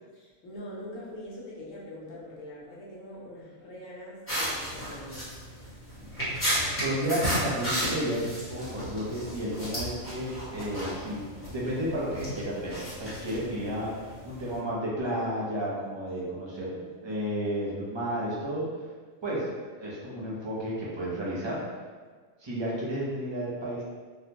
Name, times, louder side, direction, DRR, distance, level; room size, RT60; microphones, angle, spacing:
voice 1, 0.1-5.3 16.7-16.9, left 1 dB, 70° left, -6 dB, 1.2 m, -43 dB
sound 1, 4.3-14.6, equal, 10° left, 0.9 m, -34 dB
voice 2, 6.8-16.7 17.0-18.6 19.2-19.5 19.8-21.6 22.4-23.8, equal, 30° right, -6 dB, 0.6 m, -32 dB
3.8 x 2.1 x 2.8 m, 1.5 s
omnidirectional pair, 1.4 m